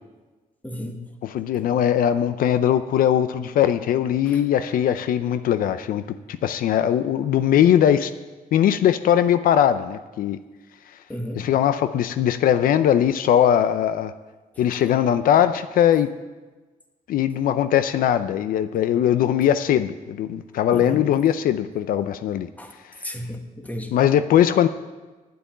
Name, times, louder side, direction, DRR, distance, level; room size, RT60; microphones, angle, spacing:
voice 1, 0.6-1.0 4.2-4.4 11.1-11.5 20.7-21.0 22.6-22.8 23.0-23.9, left 1 dB, 10° left, 4 dB, 1.5 m, -33 dB
voice 2, 1.2-6.0 6.3-8.1 8.5-10.4 11.4-14.1 14.6-16.1 17.1-22.5 23.9-24.7, left 10 dB, 80° left, 11 dB, 0.5 m, -20 dB
9.5 x 8.4 x 9.2 m, 1.2 s
cardioid pair, 110°, 14 cm